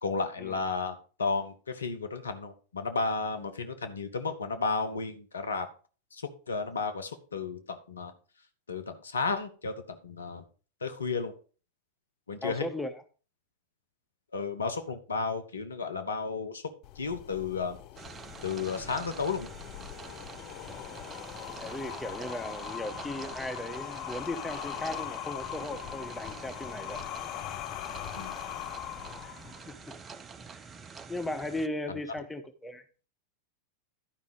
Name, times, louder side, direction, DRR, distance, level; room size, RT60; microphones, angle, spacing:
voice 1, 0.0-5.7 6.1-8.1 8.7-10.4 10.8-11.3 12.3-12.7 14.3-16.6 16.9-17.8 18.4-19.5 28.2-28.4 31.9-32.0, left 4 dB, 70° left, 1.1 m, -33 dB
voice 2, 12.4-12.9 18.9-19.0 21.6-27.1 29.2-29.4 29.6-29.9 31.1-32.8, left 1 dB, 5° left, 1.0 m, -37 dB
sound 1, 16.8-29.8, left 13 dB, 40° left, 0.6 m, -41 dB
sound 2, 18.0-31.7, right 5 dB, 20° right, 0.6 m, -46 dB
11.5 x 5.4 x 4.9 m
figure-of-eight pair, 90°, 0 cm